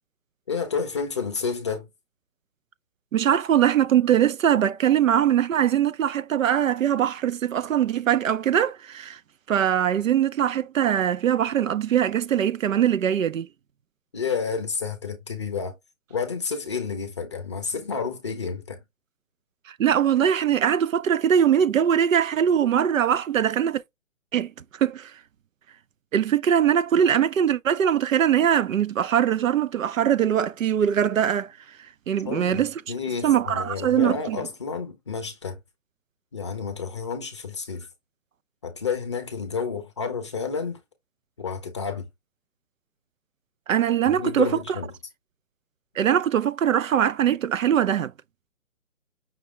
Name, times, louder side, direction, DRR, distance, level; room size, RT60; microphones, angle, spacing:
voice 1, 0.5-1.9 14.1-15.7 16.1-18.8 32.2-35.6 36.3-37.9 38.6-40.8 41.4-42.1 44.1-44.9, left 5 dB, 20° left, 0.6 m, -30 dB
voice 2, 3.1-9.2 9.5-13.5 19.7-23.8 24.3-25.2 26.1-32.8 33.2-34.4 43.7-44.8 46.0-48.1, right 9 dB, 70° right, 0.6 m, -22 dB
5.9 x 2.3 x 3.7 m
hypercardioid pair, 165°, 41 cm